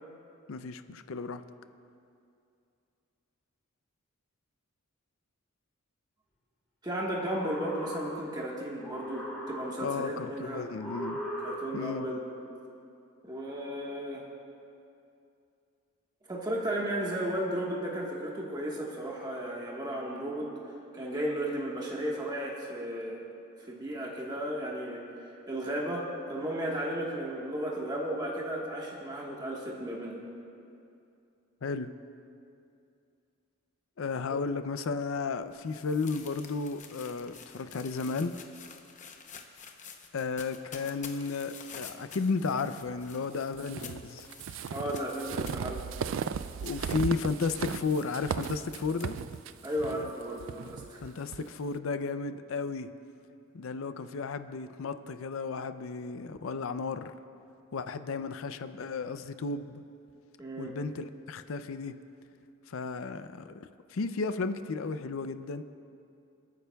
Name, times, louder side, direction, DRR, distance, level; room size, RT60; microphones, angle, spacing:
voice 1, 0.5-1.4 9.8-11.2 11.7-12.1 31.6-31.9 34.0-38.3 40.1-44.3 46.6-49.2 51.0-52.9 53.5-57.1 57.7-59.8 60.6-61.9 62.7-65.6, left 4 dB, 75° left, 10 dB, 0.5 m, -33 dB
voice 2, 6.8-10.7 11.4-12.2 13.2-14.3 16.3-20.5 20.9-23.2 23.6-30.2 34.3-34.4 44.7-45.8 49.6-51.0 60.4-60.8, right 1 dB, 20° right, -3 dB, 1.4 m, -34 dB
sound 1, 7.0-8.4 8.8-10.0 10.7-12.0, equal, 5° left, 3.1 m, -39 dB
sound 2, 35.0-50.0, left 6 dB, 35° left, 0.7 m, -50 dB
sound 3, 43.6-51.5, right 7 dB, 65° right, 0.3 m, -36 dB
29.0 x 9.7 x 2.3 m, 2.6 s
head